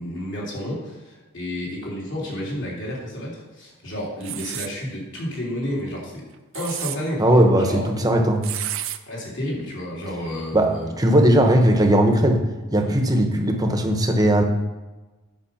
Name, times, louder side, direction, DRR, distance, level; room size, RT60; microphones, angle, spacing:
voice 1, 0.0-6.2 6.5-7.3 7.6-7.9 9.1-10.9 12.8-12.9, left 1 dB, 55° left, -4 dB, 3.4 m, -30 dB
sound 1, 4.2-4.7 6.3-7.0 8.4-9.0, right 13 dB, 60° right, 0.6 m, -30 dB
voice 2, 7.2-8.4 10.5-12.4 12.7-14.4, right 1 dB, 15° right, 4 dB, 1.0 m, -18 dB
10.0 x 5.4 x 7.1 m, 1.2 s
head